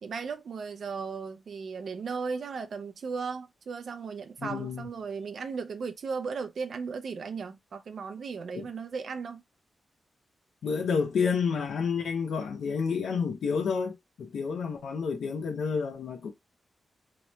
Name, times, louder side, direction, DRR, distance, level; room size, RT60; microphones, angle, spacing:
voice 1, 0.0-9.4, right 5 dB, 55° right, 0.3 m, -36 dB
voice 2, 4.4-4.9 8.5-8.7 10.6-16.3, left 5 dB, 90° left, 0.6 m, -30 dB
2.8 x 2.2 x 3.0 m
wide cardioid pair, 155°, 0 cm